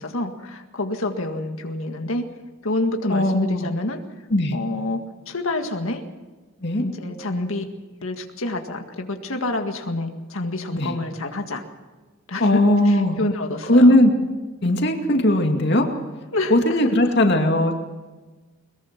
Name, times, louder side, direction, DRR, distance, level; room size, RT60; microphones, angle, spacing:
voice 1, 0.0-2.3 2.6-4.0 4.5-6.0 6.8-7.6 8.0-11.6 12.3-14.0 16.3-16.8 17.0-17.1, left 2 dB, 75° left, 4 dB, 1.9 m, -28 dB
voice 2, 3.1-3.7 4.3-4.6 6.6-6.8 10.7-11.0 12.4-13.2 13.7-14.1 14.6-15.9 16.5-17.7, left 1 dB, 50° left, 3 dB, 2.4 m, -18 dB
22.0 x 22.0 x 6.0 m, 1.3 s
head